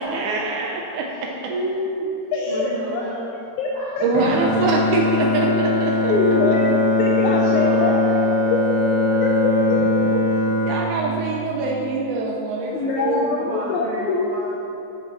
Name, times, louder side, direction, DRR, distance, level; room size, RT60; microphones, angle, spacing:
voice 1, 0.0-1.5 4.0-6.1 10.1-13.3, right 2 dB, 85° right, 0 dB, 2.2 m, -24 dB
voice 2, 1.2-2.1 2.5-3.3 3.7-4.2 5.4-5.6 6.0-6.7 7.2-8.5 9.1-9.2 11.0-11.3 12.6-14.6, right 1 dB, 65° right, -6 dB, 1.6 m, -31 dB
voice 3, 2.3-3.1 3.4-4.0 6.1-8.2 8.5-8.8 9.0-10.0 12.7-14.3, left 3 dB, 80° left, -1 dB, 2.1 m, -24 dB
Bowed string instrument, 4.1-12.4, left 2 dB, 50° left, 1.4 m, -21 dB
7.8 x 7.8 x 4.3 m, 2.9 s
omnidirectional pair, 3.4 m